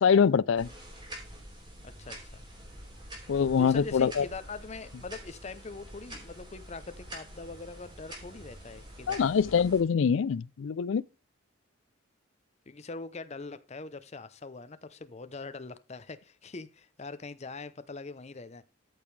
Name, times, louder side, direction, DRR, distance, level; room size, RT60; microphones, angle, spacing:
voice 1, 0.0-0.7 3.3-4.2 9.1-11.0, left 6 dB, 65° left, 0.4 m, -24 dB
sound 1, 0.6-9.8, right 1 dB, 20° right, 2.8 m, -46 dB
voice 2, 1.8-2.4 3.6-9.5 12.7-18.6, left 3 dB, 30° left, 0.6 m, -43 dB
13.5 x 5.2 x 3.2 m
head